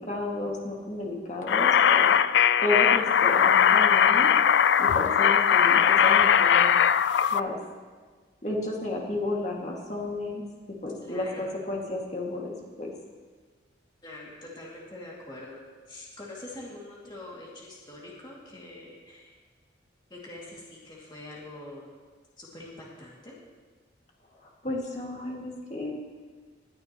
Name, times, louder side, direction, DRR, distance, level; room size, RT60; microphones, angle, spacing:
voice 1, 0.0-2.1 2.6-4.3 4.8-6.7 7.3-7.6 8.4-10.4 10.8-12.9 24.4-25.9, left 2 dB, 40° left, -2 dB, 2.2 m, -32 dB
sound 1, 1.5-7.4, left 8 dB, 65° left, 0.3 m, -20 dB
voice 2, 11.0-11.5 14.0-15.6 15.9-19.3 20.1-21.9 22.4-23.3, left 2 dB, 25° left, -5 dB, 2.4 m, -44 dB
20.0 x 10.5 x 3.1 m, 1.5 s
head